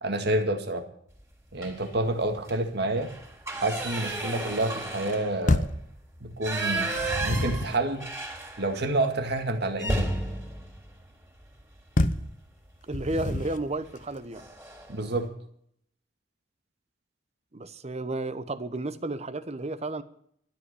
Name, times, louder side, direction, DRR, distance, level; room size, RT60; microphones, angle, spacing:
voice 1, 0.0-0.8 1.5-3.1 3.6-5.7 6.2-8.1 8.6-10.1 14.9-15.3, right 2 dB, 60° right, 6 dB, 2.0 m, -28 dB
sound 1, 1.6-2.0 2.4-2.5 2.9-8.9 9.2-9.3 9.7-11.9 13.2-13.5 13.9-14.0 14.3-15.0, right 2 dB, 15° right, 3.8 m, -33 dB
sound 2, 5.5-5.9 6.8-7.8 12.0-12.3 12.9-13.7, left 2 dB, 45° left, 0.9 m, -27 dB
voice 2, 12.9-14.5 17.5-20.0, right 2 dB, 35° right, 13 dB, 0.9 m, -32 dB
13.0 x 8.2 x 9.9 m, 0.66 s
head